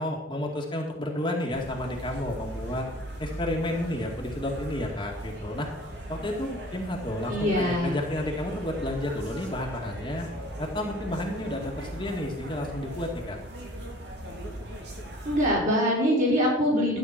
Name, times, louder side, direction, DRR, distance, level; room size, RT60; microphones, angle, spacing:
voice 1, 0.0-2.9 3.2-5.7 6.1-10.3 10.6-13.4, left 1 dB, 25° left, -1 dB, 2.0 m, -31 dB
sound 1, 1.5-15.5, right 1 dB, 65° right, 3.1 m, -39 dB
voice 2, 7.3-8.0 15.2-17.0, equal, 45° right, -4 dB, 5.8 m, -23 dB
12.5 x 9.0 x 5.9 m, 0.87 s
head